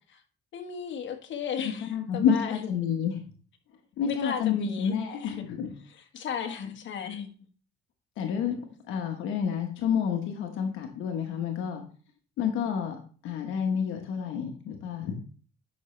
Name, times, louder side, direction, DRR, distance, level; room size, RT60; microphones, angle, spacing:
voice 1, 0.5-2.7 4.0-5.4 5.9-7.3, left 7 dB, 70° left, 1.4 m, -35 dB
voice 2, 1.6-3.2 4.0-5.7 8.2-8.6 8.9-11.8 12.4-15.2, left 7 dB, 90° left, 1.2 m, -29 dB
10.5 x 6.1 x 3.2 m
cardioid pair, 90°, 20 cm